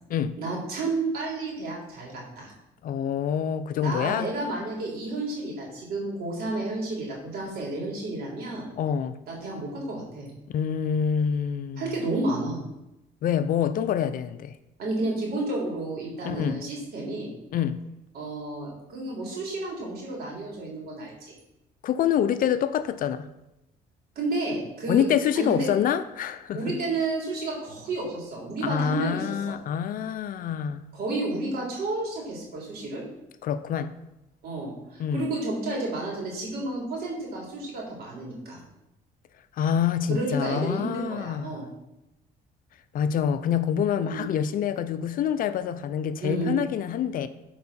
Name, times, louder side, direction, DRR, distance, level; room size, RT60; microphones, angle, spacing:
voice 1, 0.4-2.5 3.8-8.7 9.3-10.3 11.8-12.6 14.8-17.3 18.1-21.3 24.2-25.0 25.4-25.7 26.5-29.6 30.9-33.0 34.4-38.6 40.1-41.7 44.0-44.3 46.2-46.5, right 2 dB, 65° right, 3.6 m, -31 dB
voice 2, 2.8-4.3 8.8-9.2 10.5-12.0 13.2-14.6 16.2-16.6 17.5-17.8 21.8-23.3 24.9-26.8 28.6-30.8 33.4-33.9 35.0-35.3 39.6-41.6 42.9-47.3, left 8 dB, 55° left, 0.5 m, -26 dB
11.0 x 4.7 x 4.3 m
cardioid pair, 110°, 17 cm